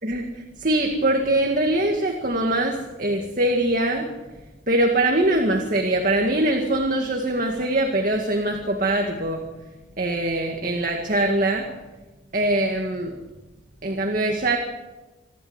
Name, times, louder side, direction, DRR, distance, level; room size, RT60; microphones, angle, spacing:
voice 1, 0.0-4.1 4.7-9.4 10.0-11.7 12.3-13.1 13.8-14.6, right 1 dB, 45° right, 2 dB, 2.1 m, -22 dB
27.5 x 12.0 x 8.2 m, 1.1 s
head